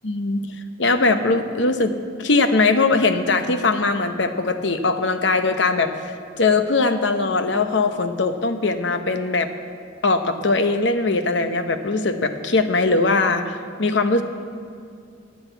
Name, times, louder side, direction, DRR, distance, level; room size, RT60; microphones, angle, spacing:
voice 1, 0.0-0.5 0.8-1.9 2.2-9.5 10.0-14.2, left 3 dB, 65° left, 8 dB, 0.8 m, -20 dB
10.0 x 9.2 x 8.1 m, 2.3 s
head